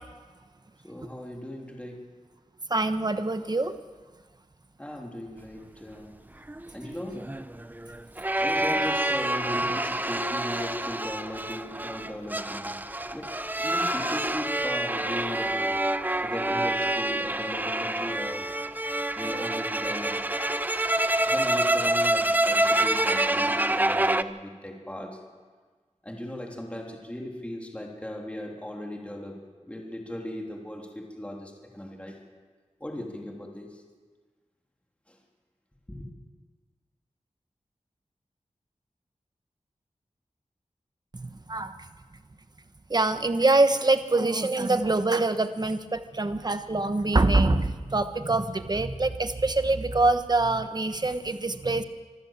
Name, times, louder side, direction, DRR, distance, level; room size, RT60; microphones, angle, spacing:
voice 1, 0.8-2.1 4.8-6.1 6.7-7.3 8.4-12.8 13.1-13.3 13.6-15.7 16.2-18.5 19.1-20.2 21.3-25.2 26.0-32.2 32.8-33.8 35.1-35.2 35.9-36.1, left 1 dB, 10° left, 0 dB, 3.4 m, -37 dB
voice 2, 2.7-3.7 41.1-41.7 42.9-51.8, right 2 dB, 35° right, 9 dB, 1.2 m, -24 dB
sound 1, 6.5-24.2, right 1 dB, 15° right, 0.7 m, -27 dB
25.5 x 14.0 x 7.4 m, 1.4 s
wide cardioid pair, 90°, 12 cm